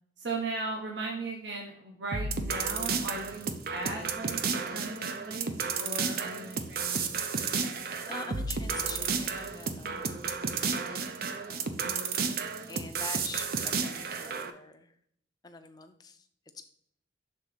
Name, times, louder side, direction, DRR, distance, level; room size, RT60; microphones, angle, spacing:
voice 1, 0.2-7.4 9.8-10.0 11.8-12.1, right 3 dB, 65° right, 0 dB, 1.0 m, -38 dB
sound 1, 2.1-14.5, right 5 dB, 50° right, 0.5 m, -32 dB
voice 2, 8.1-12.0 12.7-15.0 15.4-16.3 16.5-16.7, left 3 dB, 20° left, 7 dB, 0.5 m, -46 dB
6.6 x 3.7 x 4.9 m, 0.68 s
head